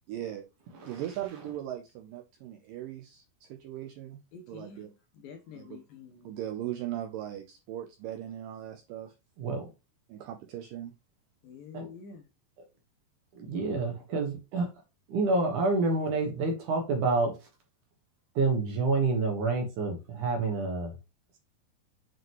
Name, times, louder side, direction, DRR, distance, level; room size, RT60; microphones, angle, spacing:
voice 1, 0.1-0.5 0.8-4.2 4.5-4.9 5.5-5.8 6.2-9.1 10.1-10.9, right 12 dB, 80° right, 2.0 m, -39 dB
voice 2, 4.3-4.9 5.1-6.3 11.4-12.2, left 6 dB, 70° left, 2.5 m, -47 dB
voice 3, 13.3-14.7 15.1-17.3 18.4-20.9, right 3 dB, 60° right, 2.5 m, -28 dB
7.8 x 5.0 x 3.0 m
omnidirectional pair, 4.7 m